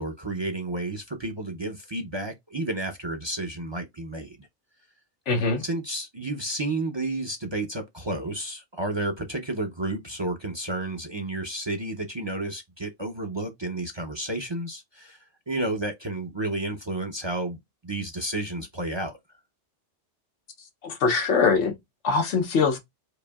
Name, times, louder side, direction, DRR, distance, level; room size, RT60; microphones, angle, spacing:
voice 1, 0.0-4.5 5.6-15.2 15.5-17.6 17.8-19.2, right 2 dB, 30° right, 0.5 m, -31 dB
voice 2, 5.3-5.6 20.8-21.7 22.0-22.8, left 4 dB, 90° left, 1.2 m, -22 dB
4.8 x 2.7 x 2.3 m
omnidirectional pair, 1.2 m